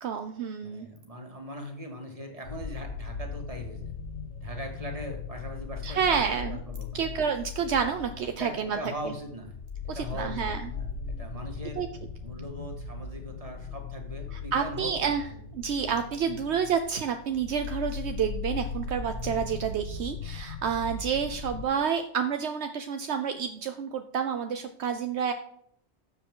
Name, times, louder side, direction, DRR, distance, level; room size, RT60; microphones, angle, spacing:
voice 1, 0.0-0.9 5.8-6.6 6.9-9.1 9.9-10.7 11.8-11.9 14.3-15.2 15.5-25.3, right 7 dB, 75° right, 7 dB, 1.0 m, -29 dB
voice 2, 0.6-3.8 4.4-7.0 8.4-9.6 9.8-11.8 12.2-15.1 16.3-16.4, equal, 30° right, 2 dB, 2.1 m, -40 dB
sound 1, 2.4-21.7, left 5 dB, 90° left, 1.5 m, -38 dB
13.0 x 7.4 x 3.8 m, 0.68 s
omnidirectional pair, 1.2 m